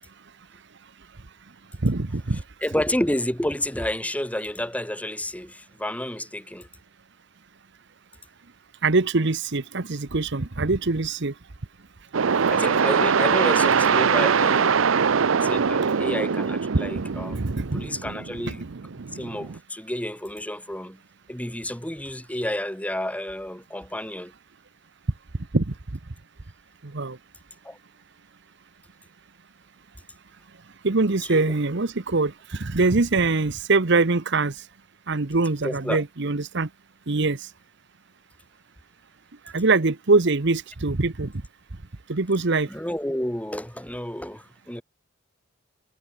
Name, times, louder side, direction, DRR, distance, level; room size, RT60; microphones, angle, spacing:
voice 1, 1.8-2.4 8.8-11.3 17.3-17.9 25.5-25.7 26.8-27.2 30.8-34.6 35.1-36.7 37.1-37.5 39.5-41.3 42.1-42.7, right 3 dB, 65° right, 1.1 m, -23 dB
voice 2, 2.6-6.7 12.5-14.9 15.3-17.4 17.7-18.6 19.1-21.0 21.3-24.3 27.6-27.8 31.3-31.4 35.6-36.0 42.7-44.8, left 1 dB, 5° left, 3.6 m, -30 dB
sound 1, 12.1-19.6, right 6 dB, 85° right, 0.6 m, -22 dB
head